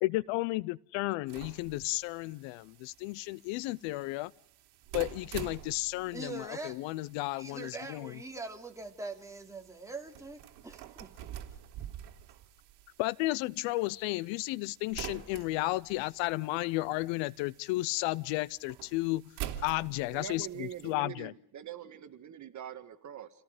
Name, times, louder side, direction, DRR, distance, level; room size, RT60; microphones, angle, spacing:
voice 1, 0.0-4.3 4.9-8.1 13.0-19.3 19.6-21.3, left 20 dB, 70° left, 22 dB, 0.7 m, -33 dB
sound 1, 1.3-20.9, right 11 dB, 55° right, 3.3 m, -48 dB
voice 2, 6.1-6.8 7.4-11.3, right 3 dB, 5° right, 2 dB, 3.1 m, -43 dB
voice 3, 20.1-23.3, right 10 dB, 35° right, 10 dB, 1.7 m, -43 dB
29.0 x 17.5 x 5.0 m, 0.66 s
cardioid pair, 125°, 48 cm